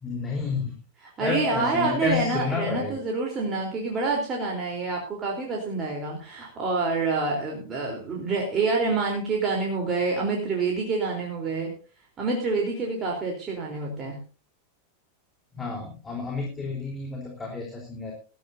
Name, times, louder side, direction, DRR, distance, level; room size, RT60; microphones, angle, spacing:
voice 1, 0.0-0.7 1.2-3.0 15.5-18.1, left 5 dB, 15° left, 0 dB, 3.8 m, -30 dB
voice 2, 1.0-11.7 12.2-14.2, right 3 dB, 25° right, -1 dB, 3.7 m, -27 dB
20.5 x 13.5 x 2.7 m, 0.34 s
figure-of-eight pair, 90°, 0 cm